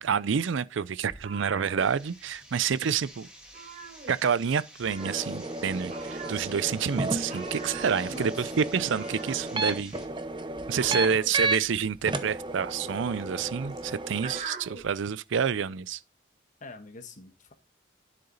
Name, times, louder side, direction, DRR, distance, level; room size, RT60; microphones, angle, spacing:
voice 1, 0.0-3.3 4.1-9.9 10.7-16.0, right 6 dB, 65° right, 0.4 m, -28 dB
sound 1, 1.1-2.6 2.8-3.1 3.4-4.5 4.8-14.9, right 4 dB, 40° right, 3.4 m, -43 dB
sound 2, 1.8-10.1, right 1 dB, 5° right, 2.8 m, -50 dB
sound 3, 5.0-11.6 12.1-14.4, right 2 dB, 25° right, 0.7 m, -33 dB
voice 2, 8.1-8.5 11.0-11.5 16.6-17.5, left 2 dB, 40° left, 1.3 m, -45 dB
9.8 x 7.9 x 3.9 m
head